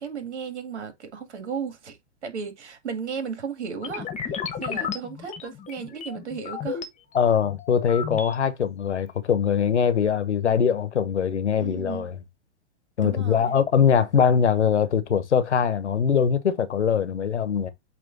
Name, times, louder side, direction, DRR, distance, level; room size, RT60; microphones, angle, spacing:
voice 1, 0.0-6.8 11.6-12.1 13.0-13.5, right 6 dB, 80° right, 2.3 m, -35 dB
sound 1, 3.8-6.9 7.4-8.3, left 7 dB, 20° left, 1.2 m, -33 dB
voice 2, 7.1-12.2 13.0-17.7, left 7 dB, 90° left, 1.2 m, -22 dB
8.4 x 3.3 x 4.0 m
hypercardioid pair, 115°, 34 cm